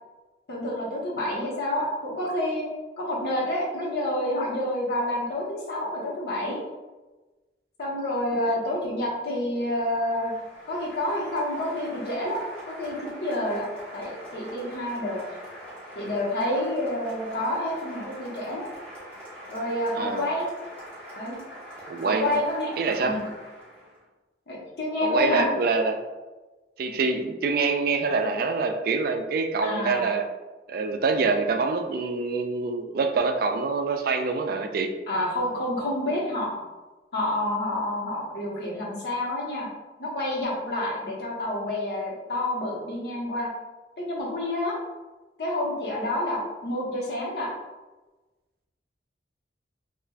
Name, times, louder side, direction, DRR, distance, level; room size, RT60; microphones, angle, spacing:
voice 1, 0.5-2.6 3.0-6.6 7.8-10.3 10.7-12.4 12.8-13.6 13.9-15.2 15.9-18.6 19.5-20.4 21.2-21.4 22.0-22.7 23.0-23.2 24.5-25.5 29.6-30.1 35.1-36.6 37.1-39.7 40.0-43.5 44.0-44.8 45.4-47.5, left 1 dB, 65° left, -5 dB, 1.0 m, -28 dB
Applause, 9.5-24.0, equal, 10° left, 1.4 m, -43 dB
voice 2, 20.0-20.3 21.9-22.4 22.8-23.2 25.0-26.0 26.8-30.3 30.7-34.9, right 4 dB, 55° right, 5 dB, 0.3 m, -25 dB
4.3 x 2.4 x 2.3 m, 1.2 s
head